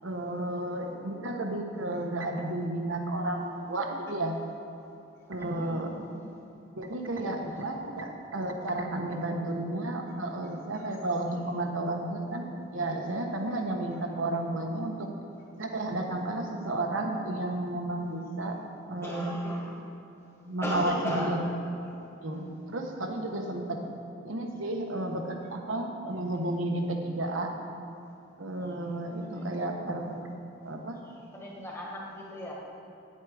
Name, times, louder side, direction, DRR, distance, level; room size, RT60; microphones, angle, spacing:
voice 1, 0.0-4.3 5.3-5.9 6.7-12.5 12.7-15.1 15.6-18.6 18.9-19.3 20.4-21.4 22.2-23.8 24.2-27.5 28.4-30.3 30.6-31.0, right 1 dB, 80° right, 3 dB, 1.1 m, -32 dB
voice 2, 5.4-6.4 10.7-10.8 19.0-19.7 20.6-21.4 29.2-29.6 31.3-32.5, equal, 15° left, -4 dB, 1.7 m, -36 dB
9.8 x 8.3 x 4.9 m, 2.9 s
head